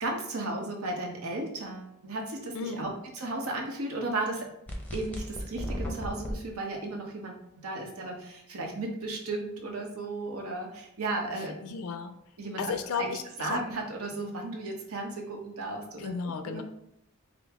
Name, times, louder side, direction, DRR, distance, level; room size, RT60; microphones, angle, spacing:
voice 1, 0.0-2.9 3.1-4.5 4.9-11.7 12.4-13.1 13.4-16.1 16.4-16.6, right 2 dB, 80° right, 1 dB, 0.9 m, -35 dB
voice 2, 2.5-2.9 11.4-12.2 12.6-13.7 16.0-16.6, left 5 dB, 75° left, 8 dB, 0.3 m, -34 dB
sound 1, 4.7-6.3, equal, 5° left, 0.6 m, -35 dB
5.0 x 2.0 x 3.5 m, 0.78 s
head